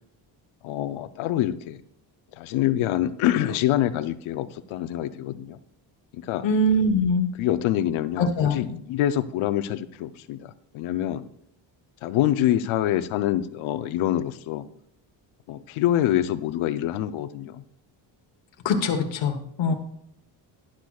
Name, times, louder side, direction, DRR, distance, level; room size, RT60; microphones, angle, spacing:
voice 1, 0.6-1.8 2.3-5.6 6.1-6.5 7.3-11.3 12.0-14.7 15.5-17.6 19.7-19.8, left 12 dB, 85° left, 13 dB, 0.7 m, -26 dB
voice 2, 6.4-7.3 8.2-8.6 18.6-19.7, left 2 dB, 70° left, 4 dB, 1.2 m, -22 dB
12.0 x 10.0 x 2.3 m, 0.70 s
cardioid pair, 115°, 47 cm